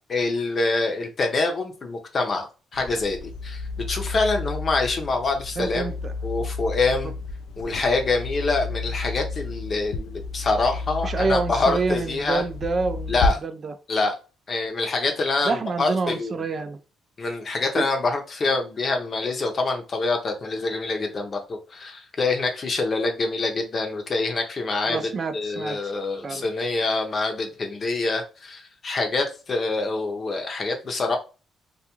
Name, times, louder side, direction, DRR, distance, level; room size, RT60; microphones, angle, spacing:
voice 1, 0.1-3.6 3.9-5.9 6.2-7.1 7.6-12.4 13.1-13.4 13.9-14.1 14.5-16.3 17.2-31.2, left 3 dB, 40° left, 0.7 m, -25 dB
sound 1, 2.7-13.3, left 3 dB, 90° left, 0.3 m, -31 dB
voice 2, 5.6-6.1 11.0-13.7 15.4-16.8 17.7-17.8 24.9-25.9 26.2-26.5, right 4 dB, 45° right, 0.3 m, -27 dB
2.3 x 2.3 x 2.9 m
cardioid pair, 90°, 0 cm